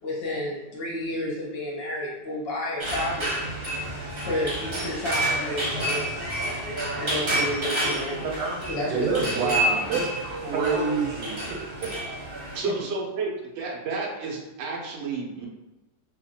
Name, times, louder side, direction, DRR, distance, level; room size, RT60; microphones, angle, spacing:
voice 1, 0.0-3.5 4.2-6.1 6.9-9.6, left 1 dB, 50° left, -4 dB, 0.7 m, -31 dB
sound 1, 2.8-12.6, right 1 dB, 45° right, 0.8 m, -29 dB
voice 2, 8.2-8.6 10.5-10.9 12.5-15.5, right 3 dB, 70° right, -2 dB, 0.6 m, -31 dB
voice 3, 8.9-11.9, right 5 dB, 90° right, 0 dB, 1.3 m, -28 dB
2.8 x 2.4 x 2.7 m, 1.0 s
omnidirectional pair, 1.9 m